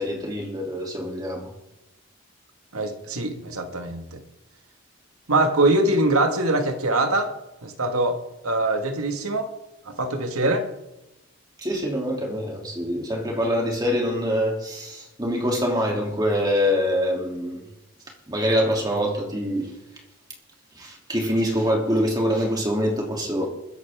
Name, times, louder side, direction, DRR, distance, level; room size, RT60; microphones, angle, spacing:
voice 1, 0.0-1.5 11.6-17.7 18.3-19.7 20.7-23.5, equal, 20° right, 0 dB, 3.0 m, -25 dB
voice 2, 2.7-4.2 5.3-7.3 7.6-9.5 9.9-10.7, right 2 dB, 80° right, 5 dB, 2.0 m, -23 dB
21.5 x 10.5 x 3.7 m, 0.92 s
head